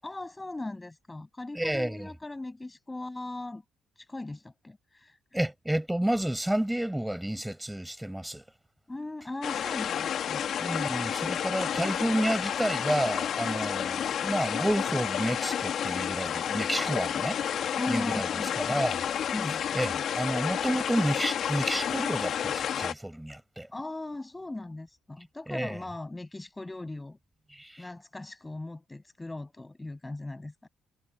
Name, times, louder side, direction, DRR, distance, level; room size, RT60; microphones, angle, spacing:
voice 1, 0.0-3.6 4.0-5.2 8.9-10.4 17.8-18.8 19.3-19.6 23.7-27.2 27.8-30.7, left 2 dB, 15° left, 7.6 m, -38 dB
voice 2, 1.5-2.1 5.3-8.4 10.6-17.4 17.9-18.3 18.6-19.0 19.7-23.7 25.5-25.8 27.5-27.9, right 1 dB, 5° right, 7.0 m, -30 dB
sound 1, 9.4-22.9, left 9 dB, 60° left, 2.5 m, -30 dB
cardioid pair, 105°, 0 cm